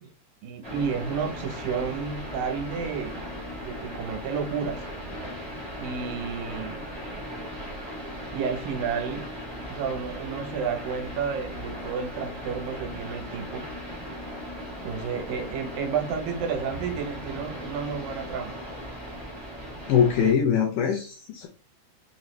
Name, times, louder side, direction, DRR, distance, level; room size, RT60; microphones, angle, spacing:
voice 1, 0.4-3.2 3.6-4.8 5.8-6.9 8.3-9.3 9.7-13.7 14.8-18.6, right 6 dB, 75° right, 2.4 m, -31 dB
sound 1, 0.6-20.3, equal, 50° right, 0.7 m, -38 dB
voice 2, 19.9-21.5, left 7 dB, 75° left, 2.0 m, -22 dB
5.8 x 2.7 x 3.1 m
omnidirectional pair, 4.2 m